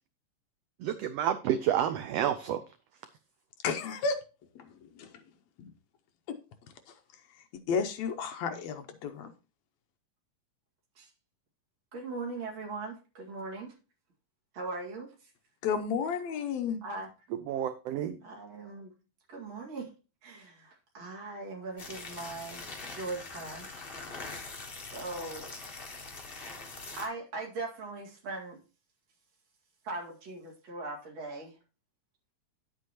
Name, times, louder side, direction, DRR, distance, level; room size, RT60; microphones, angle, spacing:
voice 1, 0.8-2.6 17.5-18.2, right 10 dB, 80° right, 10 dB, 1.4 m, -29 dB
voice 2, 3.6-4.2 4.6-5.2 5.6-5.7 6.3-6.4 7.7-9.3 15.6-16.8, left 5 dB, 75° left, 7 dB, 1.9 m, -32 dB
voice 3, 11.9-13.7 14.5-15.3 16.8-17.1 18.2-18.9 19.3-19.9 20.2-22.6 22.9-23.7 24.8-25.5 26.9-28.6 29.8-31.5, right 3 dB, 60° right, -2 dB, 3.3 m, -40 dB
sound 1, 21.8-27.1, left 3 dB, 50° left, 0.6 m, -43 dB
9.9 x 8.3 x 2.9 m, 0.33 s
omnidirectional pair, 3.4 m